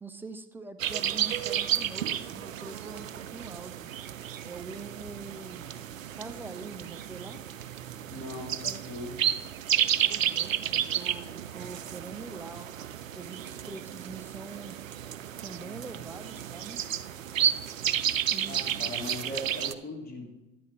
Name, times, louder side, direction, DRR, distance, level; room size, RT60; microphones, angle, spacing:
voice 1, 0.0-3.9 4.4-5.7 6.2-7.4 10.0-12.7 13.1-14.8 15.4-17.2 18.3-19.0, right 4 dB, 5° right, 8 dB, 0.5 m, -44 dB
sound 1, 0.8-19.7, right 10 dB, 85° right, 0.5 m, -32 dB
voice 2, 8.1-9.2 18.5-20.3, left 1 dB, 25° left, -1 dB, 2.8 m, -39 dB
11.0 x 8.7 x 3.3 m, 1.0 s
figure-of-eight pair, 75°, 39 cm